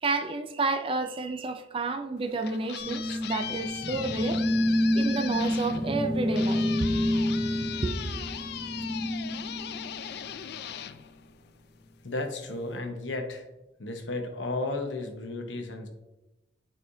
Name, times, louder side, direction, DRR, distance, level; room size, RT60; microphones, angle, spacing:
voice 1, 0.0-4.4 4.9-6.6 7.8-8.2, right 3 dB, 30° right, 0.4 m, -30 dB
sound 1, 2.2-11.8, left 10 dB, 60° left, 0.3 m, -39 dB
sound 2, 2.8-10.6, left 1 dB, 35° left, 1.5 m, -29 dB
voice 2, 12.0-13.4 13.8-15.9, left 2 dB, 85° left, 0.9 m, -33 dB
9.3 x 4.2 x 2.7 m
head